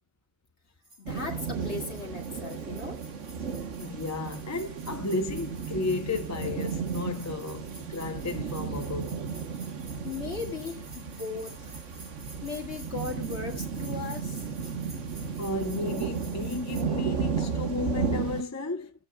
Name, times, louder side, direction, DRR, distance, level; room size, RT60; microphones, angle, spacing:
sound 1, 0.8-16.8, right 1 dB, 30° right, 2.2 m, -51 dB
voice 1, 1.0-3.0 3.4-3.5 10.0-11.7 12.4-14.8, left 4 dB, 60° left, 2.1 m, -37 dB
sound 2, 1.1-18.4, right 6 dB, 75° right, 1.5 m, -34 dB
voice 2, 3.8-9.2 15.4-18.9, left 2 dB, 20° left, 0.5 m, -33 dB
18.0 x 8.3 x 2.3 m
omnidirectional pair, 1.3 m